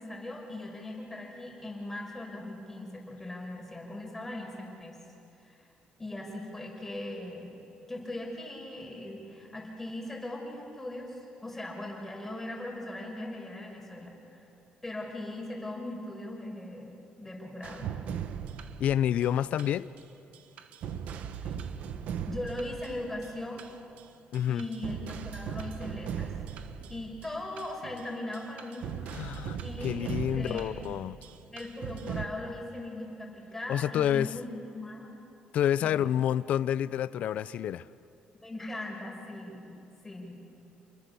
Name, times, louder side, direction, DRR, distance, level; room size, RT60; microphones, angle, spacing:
voice 1, 0.0-5.0 5.4-5.6 6.0-7.5 7.9-14.4 14.8-17.9 21.4-21.6 22.2-23.7 24.5-26.3 26.9-28.9 29.6-30.9 31.5-35.1 35.8-36.0 38.4-40.4, left 1 dB, 10° left, -1 dB, 5.9 m, -39 dB
sound 1, 17.6-20.0 20.3-24.0 24.3-32.2, right 8 dB, 70° right, 1.1 m, -39 dB
voice 2, 18.8-19.9 24.3-24.6 29.1-29.6 29.8-31.2 33.7-34.3 35.5-37.9, left 10 dB, 65° left, 17 dB, 0.6 m, -28 dB
29.0 x 21.5 x 7.0 m, 2.7 s
cardioid pair, 130°, 2 cm